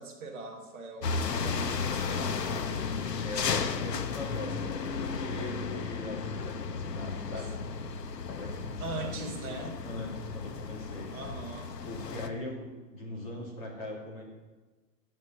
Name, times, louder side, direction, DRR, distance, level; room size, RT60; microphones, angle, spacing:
voice 1, 0.0-2.8 7.3-7.5 8.8-9.7 11.1-11.7, right 3 dB, 10° right, -5 dB, 1.2 m, -41 dB
sound 1, 1.0-12.3, left 5 dB, 75° left, 1.3 m, -34 dB
voice 2, 1.3-1.9 3.2-7.6 8.3-11.1 11.8-14.2, left 1 dB, 20° left, -2 dB, 2.4 m, -41 dB
15.0 x 5.3 x 9.4 m, 1.3 s
hypercardioid pair, 175°, 50 cm